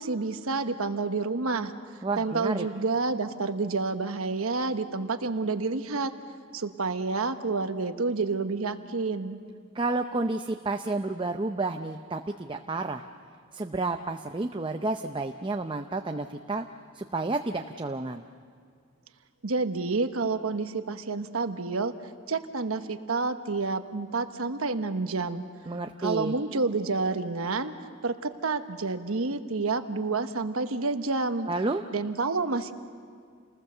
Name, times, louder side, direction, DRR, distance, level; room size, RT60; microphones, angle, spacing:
voice 1, 0.0-1.7 2.2-6.1 6.5-9.4 19.4-21.9 22.3-25.4 26.0-27.7 28.0-31.5 31.9-32.7, right 3 dB, 85° right, 9 dB, 1.1 m, -29 dB
voice 2, 2.0-2.7 9.7-13.0 13.5-16.7 16.9-18.2 25.7-26.3 31.5-31.8, right 2 dB, 25° right, 6 dB, 0.6 m, -30 dB
29.0 x 20.0 x 6.8 m, 2.1 s
head